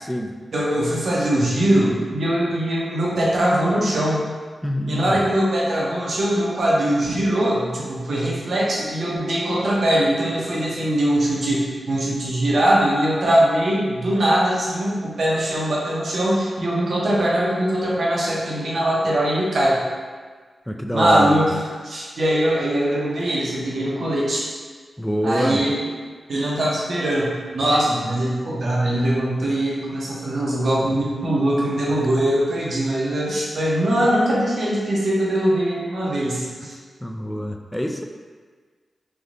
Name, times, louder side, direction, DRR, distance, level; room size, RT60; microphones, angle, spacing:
voice 1, 0.0-0.4 4.6-5.2 20.7-21.4 25.0-25.6 31.8-32.0 36.7-36.8 37.0-38.0, equal, 5° left, 3 dB, 0.3 m, -25 dB
voice 2, 0.5-4.3 4.9-19.8 20.9-24.4 25.2-25.9 26.3-36.8, right 1 dB, 70° right, -5 dB, 0.8 m, -21 dB
3.3 x 2.7 x 2.6 m, 1.5 s
cardioid pair, 45°, 0 cm